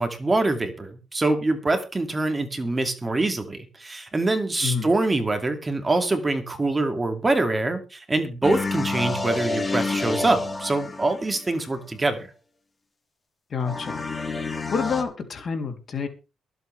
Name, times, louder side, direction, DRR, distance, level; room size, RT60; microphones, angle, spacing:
voice 1, 0.0-12.3, right 2 dB, 20° right, 6 dB, 2.5 m, -24 dB
sound 1, 8.4-11.6 13.6-15.0, left 3 dB, 25° left, 2.4 m, -29 dB
voice 2, 13.5-14.0 14.7-16.1, left 5 dB, 50° left, 5 dB, 3.3 m, -28 dB
23.0 x 8.2 x 3.4 m, 0.31 s
cardioid pair, 90°, 0 cm